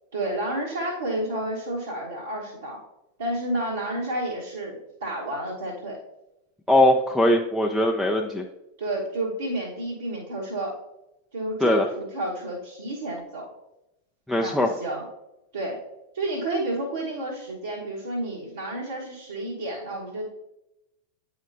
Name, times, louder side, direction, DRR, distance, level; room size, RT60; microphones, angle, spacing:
voice 1, 0.1-2.8 3.2-6.0 8.8-10.8 11.3-13.5 14.4-15.0 15.5-15.8 16.1-20.3, right 1 dB, 65° right, -6 dB, 1.3 m, -30 dB
voice 2, 6.7-8.4 11.6-11.9 14.3-14.7, left 1 dB, ahead, -1 dB, 0.4 m, -20 dB
8.9 x 5.0 x 2.6 m, 0.90 s
figure-of-eight pair, 90°, 0 cm